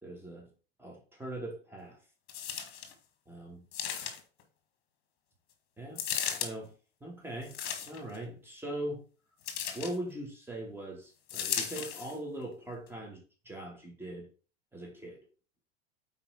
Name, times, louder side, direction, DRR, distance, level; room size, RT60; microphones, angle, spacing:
voice 1, 0.0-0.5 0.8-2.0 3.3-3.6 5.8-6.0 6.3-6.7 7.0-7.6 7.9-9.0 9.7-14.3 14.7-15.2, right 1 dB, 5° right, -1 dB, 2.9 m, -41 dB
sound 1, 2.3-2.9 3.7-4.4 5.9-6.5 7.4-8.2 9.4-10.0 11.3-12.1 12.9-13.0, left 8 dB, 45° left, 1.6 m, -35 dB
8.7 x 4.4 x 4.3 m, 0.36 s
figure-of-eight pair, 80°, 32 cm